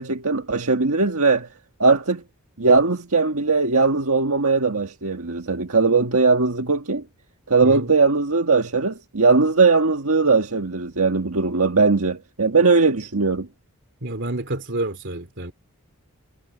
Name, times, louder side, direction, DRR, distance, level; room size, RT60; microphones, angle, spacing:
voice 1, 0.0-1.5 1.8-2.2 2.6-7.0 7.5-13.5, right 4 dB, 75° right, 1.7 m, -19 dB
voice 2, 7.6-7.9 14.0-15.5, right 2 dB, 55° right, 3.3 m, -29 dB
head